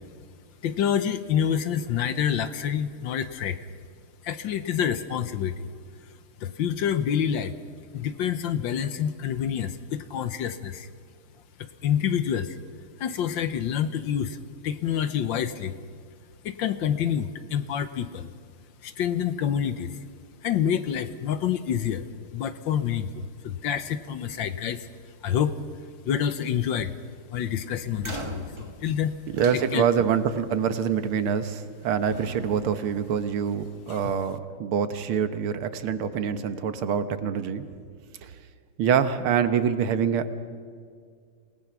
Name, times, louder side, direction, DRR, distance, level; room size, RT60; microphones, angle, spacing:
voice 1, 0.6-3.6 4.2-5.7 6.4-7.5 7.9-10.9 11.8-12.6 13.0-14.4 14.6-15.7 16.4-18.3 18.8-20.0 20.4-22.0 22.3-24.9 25.2-25.5 26.0-26.9 27.3-29.1 29.7-29.8 33.9-34.1, left 8 dB, 70° left, 12 dB, 1.4 m, -27 dB
sound 1, 28.0-30.3 31.4-31.8 32.1-33.8, right 2 dB, 20° right, 0.9 m, -41 dB
voice 2, 29.3-37.7 38.2-38.3 38.8-40.5, right 7 dB, 75° right, 10 dB, 1.9 m, -25 dB
28.0 x 18.5 x 6.0 m, 2.1 s
omnidirectional pair, 2.4 m